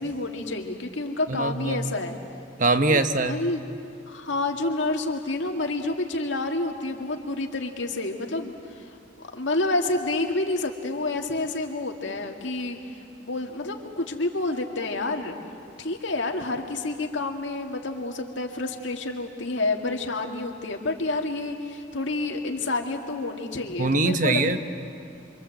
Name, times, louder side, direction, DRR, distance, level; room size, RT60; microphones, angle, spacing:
voice 1, 0.0-2.2 2.9-3.6 4.1-8.5 9.3-12.8 13.2-15.4 15.8-24.6, left 2 dB, 80° left, 3 dB, 2.2 m, -29 dB
voice 2, 1.3-1.9 2.6-3.4 23.8-24.6, right 3 dB, 45° right, 9 dB, 1.0 m, -22 dB
27.5 x 25.0 x 7.8 m, 2.5 s
head